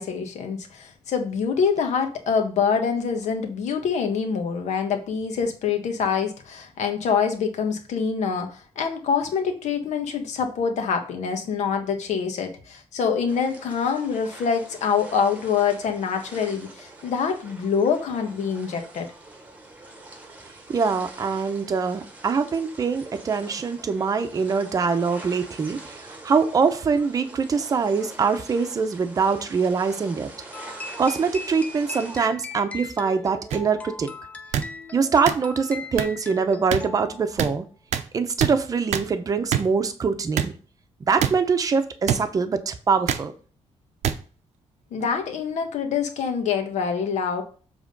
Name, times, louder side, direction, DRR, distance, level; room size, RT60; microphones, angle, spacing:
voice 1, 0.0-19.1 44.9-47.4, left 6 dB, 75° left, 5 dB, 1.4 m, -25 dB
sound 1, 13.3-32.3, right 2 dB, 15° right, 1.1 m, -44 dB
voice 2, 20.7-30.3 31.0-34.1 34.9-37.7 38.1-40.5 41.1-43.3, right 5 dB, 30° right, 8 dB, 0.7 m, -23 dB
sound 2, 30.5-37.3, left 2 dB, 10° left, 0.5 m, -39 dB
sound 3, 33.5-33.6 34.5-34.7 35.3-35.4 36.0-36.1 36.7-36.8 37.4-37.5 37.9-38.0 38.4-38.5 38.9-39.1 39.5-39.6 40.4-40.5 41.2-41.3 42.1-42.2 43.1-43.2 44.0-44.1 45.0-45.2, right 9 dB, 75° right, 0.7 m, -24 dB
7.4 x 3.6 x 5.2 m, 0.39 s
wide cardioid pair, 180°, 12 cm